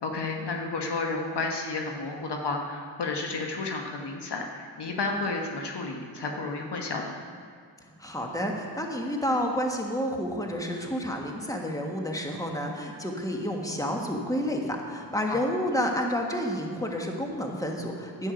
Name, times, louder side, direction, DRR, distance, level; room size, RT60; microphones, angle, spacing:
voice 1, 0.0-7.2 15.3-15.4, left 3 dB, 65° left, 2 dB, 1.3 m, -31 dB
voice 2, 7.9-18.3, equal, 10° left, 1 dB, 1.6 m, -30 dB
10.0 x 8.7 x 5.2 m, 2.1 s
cardioid pair, 55°, 44 cm